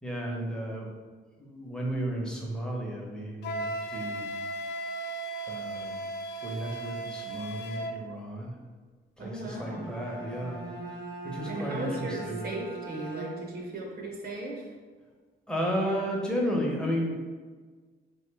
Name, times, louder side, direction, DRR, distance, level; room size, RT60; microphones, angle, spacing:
voice 1, 0.0-0.9 1.4-4.3 5.5-6.0 6.4-8.5 9.2-10.6 11.2-12.5 15.5-17.2, equal, 5° left, -2 dB, 0.8 m, -33 dB
Wind instrument woodwind instrument, 3.4-8.0, right 2 dB, 60° left, 0.4 m, -36 dB
voice 2, 9.2-9.9 11.5-14.7, right 1 dB, 50° right, 0 dB, 0.8 m, -37 dB
Bowed string instrument, 9.4-13.7, right 3 dB, 85° right, 1.0 m, -41 dB
3.0 x 2.7 x 3.3 m, 1.4 s
cardioid pair, 90°, 20 cm